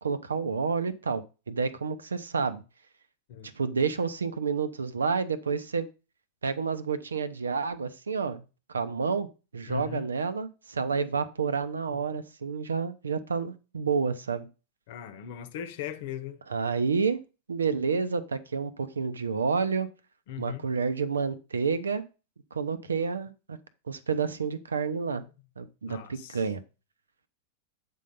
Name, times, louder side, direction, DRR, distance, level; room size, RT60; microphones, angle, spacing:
voice 1, 0.0-2.6 3.6-5.9 6.4-8.4 8.7-9.3 9.5-14.5 16.5-17.2 17.5-19.9 20.4-22.0 22.5-23.6 23.9-25.2 25.6-26.6, right 5 dB, 75° right, 0.7 m, -29 dB
voice 2, 9.7-10.1 11.9-12.2 14.9-16.4 20.3-20.6 25.9-26.4, left 10 dB, 50° left, 1.0 m, -39 dB
8.3 x 3.9 x 5.4 m
figure-of-eight pair, 90°, 0 cm